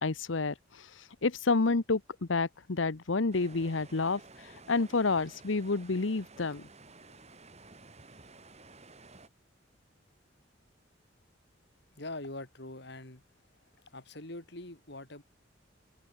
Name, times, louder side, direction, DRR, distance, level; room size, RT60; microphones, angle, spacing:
voice 1, 0.0-0.9 1.2-4.2 4.7-6.6, left 3 dB, 80° left, 1.0 m, -29 dB
sound 1, 3.3-9.3, right 3 dB, 35° right, 4.5 m, -54 dB
voice 2, 12.0-13.2 13.9-15.2, left 2 dB, 65° left, 3.9 m, -43 dB
open air
head